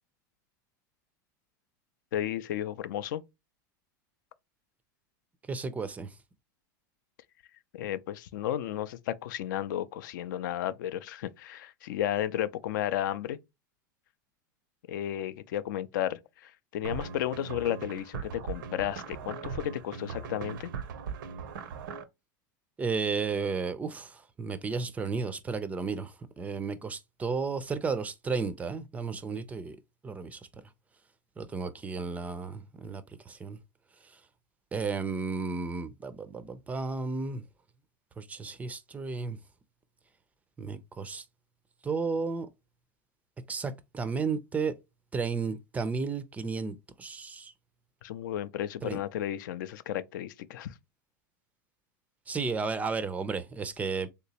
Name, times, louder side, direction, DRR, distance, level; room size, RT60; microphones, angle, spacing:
voice 1, 2.1-3.2 7.7-13.4 14.9-20.7 48.0-50.7, left 11 dB, 75° left, 0.4 m, -33 dB
voice 2, 5.5-6.1 22.8-29.8 30.0-30.4 31.4-33.6 34.0-34.1 34.7-37.4 38.2-39.4 40.6-41.2 41.8-42.5 43.5-44.7 45.1-47.5 48.8-49.0 52.3-54.1, right 4 dB, 15° right, 0.4 m, -33 dB
sound 1, 16.8-22.0, right 6 dB, 85° right, 0.6 m, -39 dB
3.4 x 2.9 x 2.8 m
supercardioid pair, 130°, 11 cm